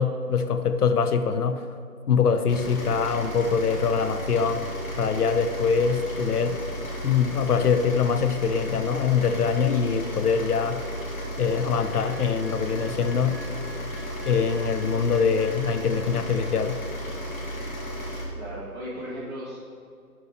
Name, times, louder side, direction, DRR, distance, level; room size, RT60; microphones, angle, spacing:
voice 1, 0.0-1.7 2.1-4.7 5.0-6.6 7.0-10.8 11.4-13.4 14.3-16.8, left 6 dB, 75° left, 10 dB, 0.6 m, -24 dB
sound 1, 2.5-18.2, equal, 60° left, 1.9 m, -34 dB
sound 2, 12.4-16.9 17.1-17.4, equal, 45° right, 0.7 m, -51 dB
voice 2, 18.3-19.6, equal, 15° right, -11 dB, 1.6 m, -36 dB
7.2 x 6.1 x 4.3 m, 2.3 s
hypercardioid pair, 175°, 46 cm